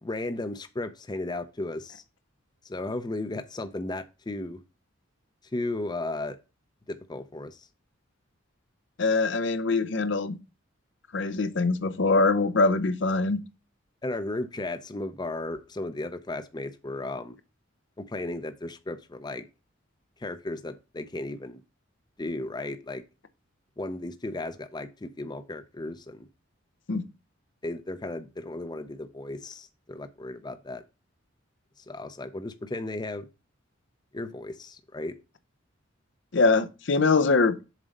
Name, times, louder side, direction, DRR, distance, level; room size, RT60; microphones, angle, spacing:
voice 1, 0.0-2.0 2.6-4.6 5.5-6.4 6.9-7.7 14.0-17.4 18.0-19.5 20.2-21.6 22.2-23.0 23.8-26.3 27.6-30.8 31.9-33.3 34.1-35.2, left 2 dB, 20° left, 0.5 m, -35 dB
voice 2, 9.0-10.4 11.1-13.4 26.9-27.0 36.3-37.6, left 3 dB, 65° left, 0.7 m, -23 dB
7.4 x 4.0 x 5.2 m
head